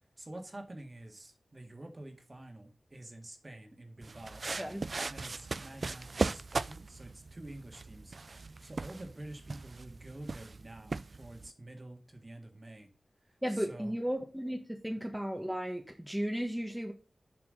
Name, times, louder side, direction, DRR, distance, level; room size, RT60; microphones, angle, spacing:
voice 1, 0.2-4.5 5.1-12.9 13.3-13.9, right 1 dB, 35° right, 4 dB, 1.9 m, -48 dB
sound 1, 4.0-11.5, right 3 dB, 55° right, 0.3 m, -38 dB
voice 2, 13.4-16.9, equal, 5° right, 2 dB, 1.4 m, -35 dB
7.5 x 4.8 x 6.4 m, 0.33 s
wide cardioid pair, 70°, 0 cm